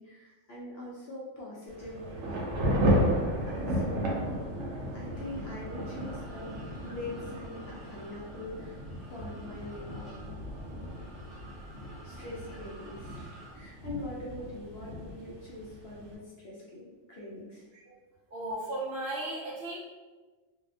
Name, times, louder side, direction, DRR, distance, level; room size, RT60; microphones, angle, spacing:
voice 1, 0.0-2.8 3.5-4.4 4.9-8.8 9.1-10.3 12.0-17.7, left 2 dB, 60° left, -6 dB, 0.7 m, -43 dB
Thunder / Rain, 1.7-16.1, equal, 85° right, 1.0 m, -34 dB
sound 1, 5.1-13.5, right 1 dB, ahead, 0.4 m, -51 dB
voice 2, 18.3-19.8, right 1 dB, 60° right, -6 dB, 0.7 m, -35 dB
2.7 x 2.0 x 2.6 m, 1.3 s
omnidirectional pair, 1.3 m